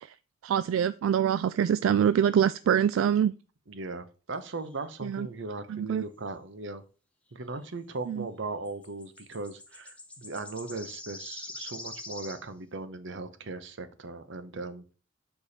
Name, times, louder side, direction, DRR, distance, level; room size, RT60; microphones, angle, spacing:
voice 1, 0.4-3.3 5.0-5.3 5.7-6.0 8.1-8.3, right 8 dB, 80° right, 0.3 m, -25 dB
voice 2, 3.7-6.8 7.3-14.9, right 3 dB, 65° right, 0.8 m, -38 dB
sound 1, 4.6-4.8 8.6-12.4, left 2 dB, 5° left, 1.0 m, -44 dB
6.8 x 4.6 x 4.1 m
head